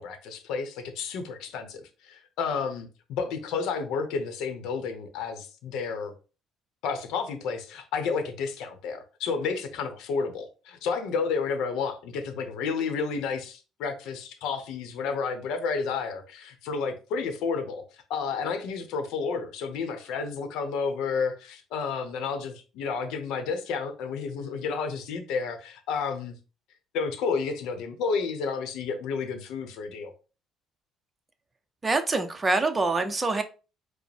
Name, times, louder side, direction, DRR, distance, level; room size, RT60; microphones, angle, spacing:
voice 1, 0.0-6.1 6.8-17.8 18.1-26.3 26.9-30.1, left 5 dB, 80° left, 0.7 m, -31 dB
voice 2, 31.8-33.4, right 3 dB, 20° right, 0.6 m, -25 dB
4.9 x 2.0 x 3.3 m
cardioid pair, 110°, 0 cm